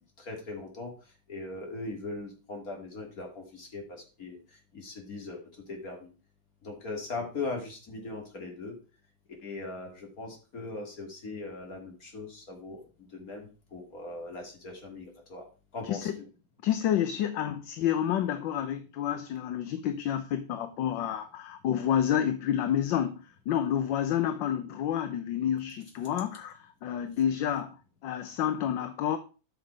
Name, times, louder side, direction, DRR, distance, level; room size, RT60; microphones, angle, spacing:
voice 1, 0.2-0.9 1.3-4.4 4.7-5.4 5.7-6.1 6.6-8.8 9.4-15.5 15.7-16.1, left 3 dB, 45° left, 3.2 m, -39 dB
voice 2, 16.6-23.2 23.5-27.7 28.0-29.2, left 10 dB, 70° left, 1.5 m, -29 dB
13.0 x 6.1 x 4.8 m
omnidirectional pair, 2.2 m